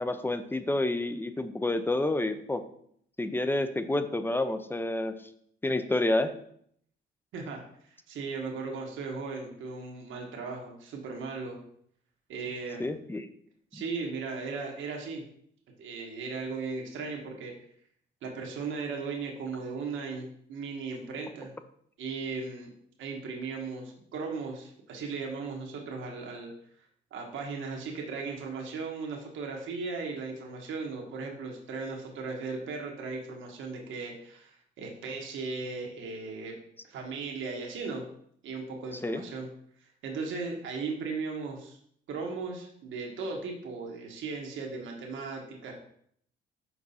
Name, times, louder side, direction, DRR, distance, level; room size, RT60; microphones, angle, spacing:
voice 1, 0.0-2.6 3.2-5.2 5.6-6.3 12.8-13.3 13.7-13.8 39.0-39.2, left 2 dB, 10° left, 10 dB, 0.5 m, -29 dB
voice 2, 7.3-7.6 8.1-11.6 12.3-12.8 13.7-15.2 15.8-17.5 18.2-21.5 22.0-22.7 23.0-26.5 27.1-36.6 36.9-38.0 38.4-39.5 40.0-41.8 42.1-45.7, right 4 dB, 75° right, 1 dB, 1.3 m, -37 dB
6.0 x 4.5 x 4.1 m, 0.66 s
cardioid pair, 90°, 20 cm